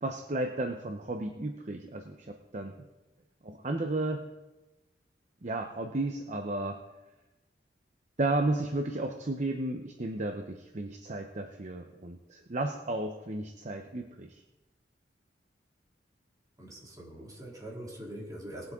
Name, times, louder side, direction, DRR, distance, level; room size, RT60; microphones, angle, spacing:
voice 1, 0.0-2.7 3.4-4.2 5.4-6.8 8.2-14.4, right 2 dB, 40° right, 4 dB, 0.8 m, -33 dB
voice 2, 16.6-18.7, right 1 dB, 20° right, -4 dB, 3.2 m, -43 dB
20.5 x 7.9 x 3.7 m, 1.0 s
head